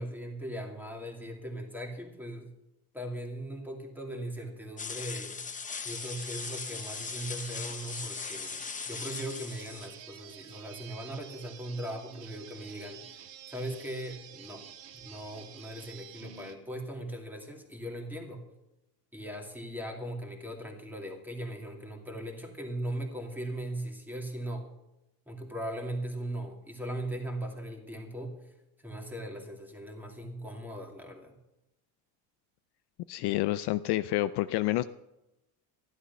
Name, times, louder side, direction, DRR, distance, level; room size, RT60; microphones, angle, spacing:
voice 1, 0.0-2.5 2.9-5.4 5.8-13.0 13.5-14.7 14.9-18.4 19.1-24.7 25.3-28.5 28.8-31.4, right 1 dB, 5° right, 2 dB, 2.4 m, -39 dB
sound 1, 4.8-9.9, left 5 dB, 15° left, 0.7 m, -39 dB
sound 2, 5.9-16.6, right 10 dB, 65° right, 1.7 m, -50 dB
voice 2, 33.1-34.8, left 16 dB, 60° left, 13 dB, 0.5 m, -28 dB
13.0 x 11.5 x 5.5 m, 0.93 s
cardioid pair, 135°, 47 cm